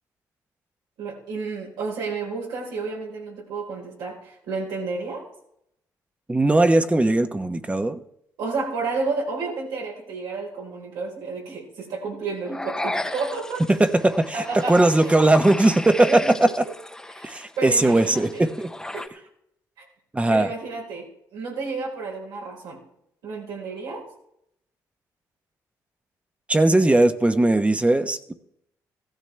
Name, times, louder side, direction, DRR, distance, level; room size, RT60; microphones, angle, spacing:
voice 1, 1.0-5.2 8.4-13.6 14.3-15.1 16.0-16.5 17.1-18.5 18.9-19.3 19.8-19.9 20.3-22.8 23.2-24.0, right 4 dB, 85° right, -1 dB, 4.5 m, -31 dB
voice 2, 6.3-8.0 13.7-16.7 17.2-18.7 20.1-20.5 26.5-28.3, right 2 dB, 15° right, 10 dB, 1.1 m, -19 dB
sound 1, 12.4-19.1, left 1 dB, 10° left, 0.9 m, -35 dB
16.5 x 13.0 x 3.4 m, 0.75 s
supercardioid pair, 65°, 7 cm